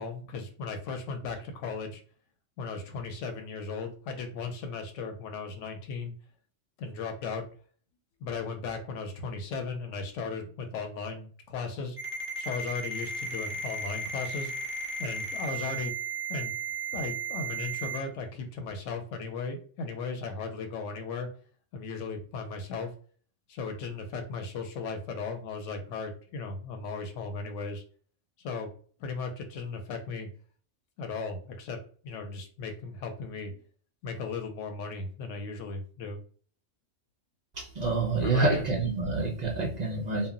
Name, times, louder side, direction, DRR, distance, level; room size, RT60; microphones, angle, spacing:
voice 1, 0.0-2.0 2.6-6.1 6.8-7.4 8.2-12.0 12.4-14.5 15.0-15.9 16.3-16.5 16.9-21.3 21.7-22.9 23.5-27.8 28.4-28.7 29.0-30.3 31.0-31.8 32.0-33.6 34.0-36.2 38.2-38.6, left 4 dB, 90° left, 5 dB, 0.9 m, -36 dB
Ringtone, 12.0-18.0, right 4 dB, 10° right, 0.9 m, -35 dB
voice 2, 37.6-40.3, right 3 dB, 60° right, 0 dB, 0.4 m, -27 dB
2.1 x 2.1 x 3.6 m, 0.44 s
omnidirectional pair, 1.2 m